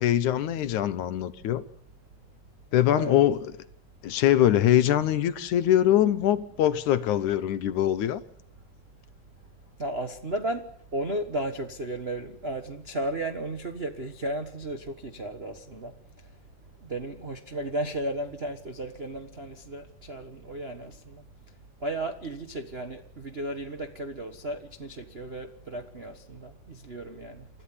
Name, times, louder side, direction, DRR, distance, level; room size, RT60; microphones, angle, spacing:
voice 1, 0.0-1.6 2.7-3.5 4.0-8.2, left 12 dB, 75° left, 2.5 m, -23 dB
voice 2, 9.8-16.3 16.8-21.2 21.8-27.5, right 1 dB, 60° right, 0.6 m, -34 dB
29.0 x 13.5 x 9.8 m
omnidirectional pair, 3.5 m